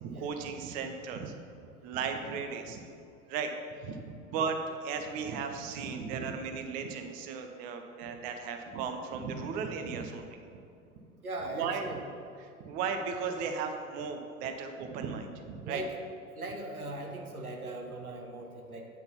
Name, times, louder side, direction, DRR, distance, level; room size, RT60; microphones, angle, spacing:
voice 1, 0.0-1.3 1.8-2.8 3.3-3.5 3.8-10.4 11.5-11.9 12.6-15.8, right 5 dB, 20° right, 5 dB, 0.4 m, -36 dB
voice 2, 11.2-12.0 15.6-16.0 16.3-18.9, right 2 dB, 90° right, 2 dB, 1.0 m, -39 dB
9.0 x 3.9 x 5.6 m, 2.5 s
figure-of-eight pair, 90°, 43 cm